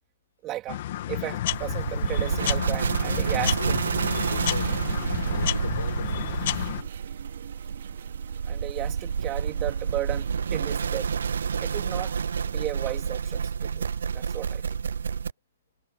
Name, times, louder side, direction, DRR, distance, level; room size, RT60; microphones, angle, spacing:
voice 1, 0.4-0.8 1.1-3.8 8.4-11.1 11.6-13.9 14.1-14.6, right 15 dB, 25° right, 3.3 m, -35 dB
sound 1, 0.7-6.8, left 13 dB, 50° left, 2.2 m, -31 dB
sound 2, 1.5-15.3, right 6 dB, 80° right, 0.4 m, -29 dB
voice 2, 3.5-6.1 6.6-6.9, left 7 dB, 85° left, 4.5 m, -40 dB
sound 3, 4.3-12.7, right 10 dB, 65° right, 3.2 m, -45 dB
hypercardioid pair, 150°, 0 cm